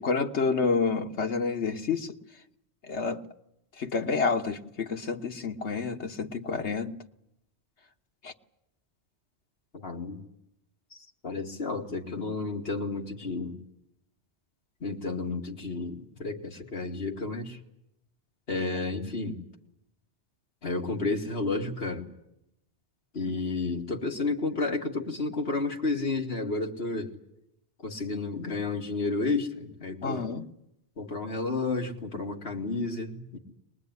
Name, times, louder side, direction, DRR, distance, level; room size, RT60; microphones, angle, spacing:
voice 1, 0.0-2.1 2.8-3.2 3.8-7.0 8.2-8.3 30.0-30.4, left 4 dB, 80° left, 1.6 m, -29 dB
voice 2, 9.7-10.2 10.9-13.6 14.8-17.6 18.5-19.4 20.6-22.1 23.1-27.1 27.8-30.2 31.0-33.4, left 3 dB, 60° left, 2.5 m, -31 dB
24.0 x 20.5 x 9.6 m
omnidirectional pair, 1.1 m